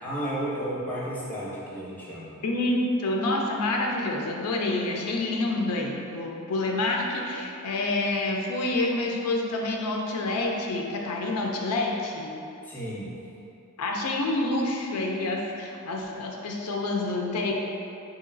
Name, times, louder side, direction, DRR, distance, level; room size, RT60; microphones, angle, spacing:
voice 1, 0.0-2.4 12.6-13.2, right 1 dB, 10° left, -6 dB, 0.7 m, -33 dB
voice 2, 2.4-12.3 13.8-17.5, left 2 dB, 90° left, 0 dB, 0.4 m, -28 dB
3.9 x 2.9 x 2.5 m, 2.7 s
head